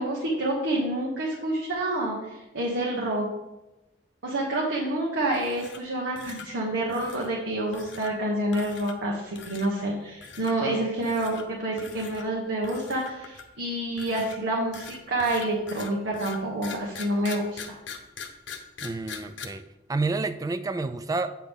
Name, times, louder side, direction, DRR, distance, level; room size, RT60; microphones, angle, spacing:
voice 1, 0.0-2.2 2.5-3.3 4.2-17.6, right 1 dB, 75° right, -3 dB, 1.3 m, -28 dB
sound 1, 5.3-5.9 6.2-6.5 6.9-7.3 7.7-8.1 8.5-9.1 9.4-9.7 10.2-10.5 11.0-11.4 11.8-12.2 12.6-13.6 14.0-19.4, left 6 dB, 75° left, 0.9 m, -42 dB
voice 2, 18.8-19.6 19.9-21.3, right 3 dB, 20° right, 11 dB, 0.3 m, -29 dB
8.5 x 5.8 x 3.6 m, 1.0 s
head